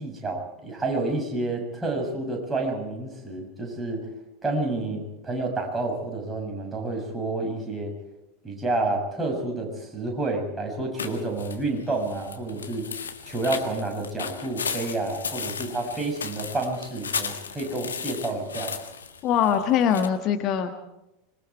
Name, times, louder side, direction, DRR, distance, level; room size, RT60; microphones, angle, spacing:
voice 1, 0.0-4.0 4.4-7.9 8.4-12.9 13.3-18.7, right 2 dB, 15° right, 1 dB, 6.9 m, -29 dB
sound 1, 11.0-20.1, left 6 dB, 75° left, 1.7 m, -35 dB
voice 2, 19.2-20.7, left 8 dB, 40° left, 6 dB, 1.6 m, -22 dB
26.0 x 22.5 x 4.7 m, 0.90 s
figure-of-eight pair, 80°, 0 cm